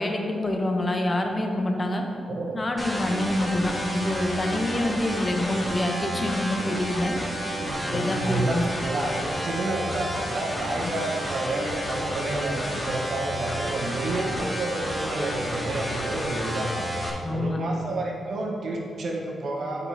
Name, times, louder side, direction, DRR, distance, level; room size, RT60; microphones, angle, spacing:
voice 1, 0.0-2.0 2.5-7.2 7.7-8.6 17.2-17.6, left 1 dB, 35° left, 3 dB, 0.9 m, -26 dB
voice 2, 2.3-2.6 3.3-3.5 7.6-16.9 17.2-19.9, right 2 dB, 65° right, -1 dB, 1.1 m, -30 dB
sound 1, 2.8-17.1, equal, 10° left, 1.6 m, -31 dB
8.1 x 5.4 x 2.9 m, 2.4 s
hypercardioid pair, 40°, 0 cm